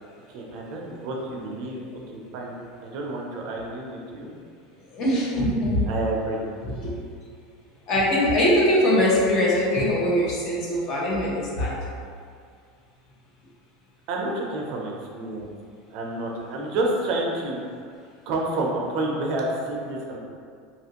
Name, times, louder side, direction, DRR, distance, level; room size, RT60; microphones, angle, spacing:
voice 1, 0.3-4.3 5.9-6.4 14.1-15.5 15.9-17.6 18.3-20.2, right 2 dB, 50° right, -1 dB, 0.5 m, -29 dB
voice 2, 4.9-5.9 6.6-6.9 7.9-11.8, left 1 dB, 40° left, -5 dB, 0.7 m, -22 dB
2.8 x 2.4 x 2.8 m, 2.2 s
supercardioid pair, 150°, 0 cm